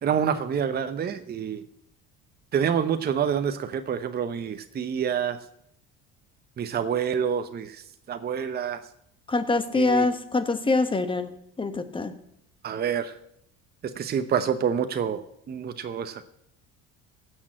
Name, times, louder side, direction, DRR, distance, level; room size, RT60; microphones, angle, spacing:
voice 1, 0.0-1.6 2.5-5.4 6.6-8.8 9.7-10.1 12.6-13.2 13.8-15.2 15.5-16.3, right 8 dB, 30° right, 9 dB, 0.8 m, -27 dB
voice 2, 9.3-12.2, left 3 dB, 15° left, 11 dB, 1.2 m, -25 dB
15.5 x 6.4 x 7.5 m, 0.75 s
cardioid pair, 115°, 30 cm